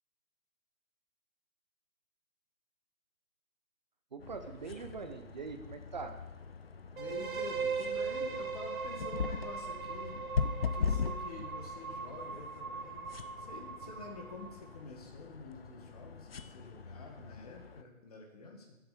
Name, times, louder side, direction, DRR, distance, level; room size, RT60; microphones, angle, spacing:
voice 1, 4.1-6.2, right 4 dB, 30° right, 8 dB, 1.0 m, -43 dB
sound 1, 4.2-17.8, left 5 dB, 45° left, 0.7 m, -40 dB
voice 2, 7.0-10.2 10.7-18.8, left 3 dB, 25° left, 2 dB, 1.9 m, -48 dB
sound 2, 7.0-14.8, right 5 dB, 80° right, 1.6 m, -39 dB
15.5 x 7.9 x 5.2 m, 1.0 s
hypercardioid pair, 170°, 42 cm